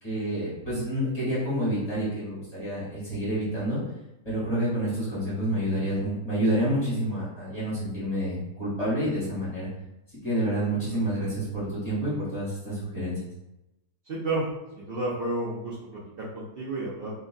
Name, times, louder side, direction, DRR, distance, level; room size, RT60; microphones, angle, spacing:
voice 1, 0.0-3.8 4.2-9.7 10.2-13.2, equal, 25° left, -10 dB, 1.5 m, -28 dB
voice 2, 14.0-14.5 14.8-17.1, right 2 dB, 90° right, -8 dB, 0.5 m, -31 dB
2.9 x 2.6 x 2.2 m, 0.94 s
omnidirectional pair, 1.7 m